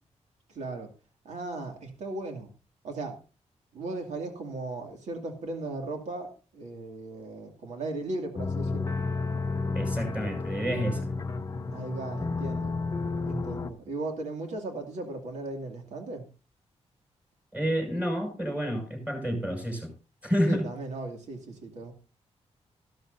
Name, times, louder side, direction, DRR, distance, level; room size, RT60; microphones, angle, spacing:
voice 1, 0.5-0.9 1.2-2.5 2.8-3.2 3.7-9.0 11.7-12.8 13.0-16.3 20.5-21.9, right 2 dB, 85° right, 3 dB, 2.5 m, -37 dB
sound 1, 8.4-13.7, left 3 dB, 30° left, 0.8 m, -31 dB
voice 2, 9.7-11.1 17.5-19.9 20.2-20.7, equal, 10° right, 3 dB, 6.3 m, -29 dB
14.5 x 13.0 x 2.7 m, 0.33 s
wide cardioid pair, 135°, 12 cm